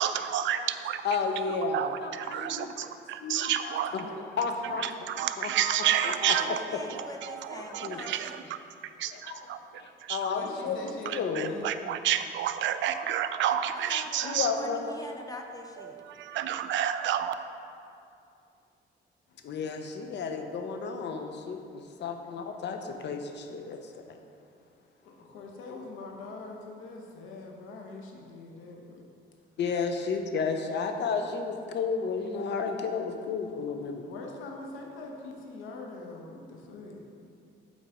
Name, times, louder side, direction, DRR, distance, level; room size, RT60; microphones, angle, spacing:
voice 1, 0.0-1.0 1.7-3.9 4.8-6.6 6.9-8.6 9.0-9.6 10.0-10.3 11.1-14.5 15.9-17.3, right 10 dB, 70° right, 11 dB, 0.4 m, -30 dB
voice 2, 1.0-2.9 3.2-4.1 4.4-5.1 5.4-5.5 6.3-6.4 7.8-8.0 9.1-9.4 9.8-11.6 11.8-12.0 14.2-14.8 19.4-24.2 29.6-34.0, left 5 dB, 60° left, 5 dB, 0.7 m, -32 dB
voice 3, 3.9-4.8 10.3-11.7 25.0-29.0 34.1-37.1, left 3 dB, 90° left, 1 dB, 1.0 m, -43 dB
voice 4, 5.8-8.5 13.7-16.0, left 1 dB, 20° left, 2 dB, 0.6 m, -43 dB
7.6 x 4.1 x 5.0 m, 2.5 s
cardioid pair, 90°, 20 cm